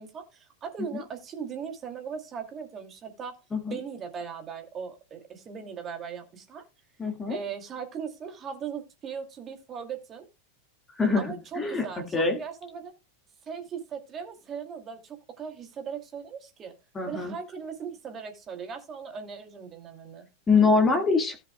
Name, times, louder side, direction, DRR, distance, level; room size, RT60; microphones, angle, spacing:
voice 1, 0.0-3.4 3.7-6.6 7.3-10.3 11.2-12.9 13.5-16.7 17.1-20.3, right 6 dB, 25° right, 2.6 m, -38 dB
voice 2, 7.0-7.4 11.0-11.9 12.1-12.4 16.9-17.3 20.5-21.4, left 4 dB, 15° left, 2.0 m, -24 dB
17.5 x 6.0 x 2.3 m
figure-of-eight pair, 90°, 0 cm